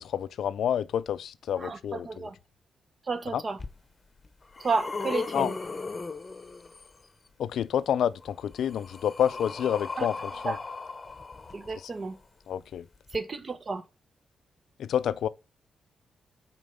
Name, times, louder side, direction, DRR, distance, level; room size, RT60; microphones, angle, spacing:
voice 1, 0.0-2.3 3.3-3.4 5.3-5.5 7.4-10.2 10.4-10.6 11.8-11.9 12.5-12.9 14.8-15.3, left 9 dB, 80° left, 0.4 m, -28 dB
voice 2, 1.6-2.3 3.1-3.6 4.6-5.6 10.0-10.1 10.5-10.6 11.5-12.2 13.1-13.8, right 4 dB, 45° right, 0.9 m, -31 dB
sound 1, 3.6-3.7 4.2-7.0 8.2-12.1 13.1-13.2, left 4 dB, 35° left, 0.8 m, -37 dB
6.3 x 4.4 x 5.4 m
cardioid pair, 65°, 0 cm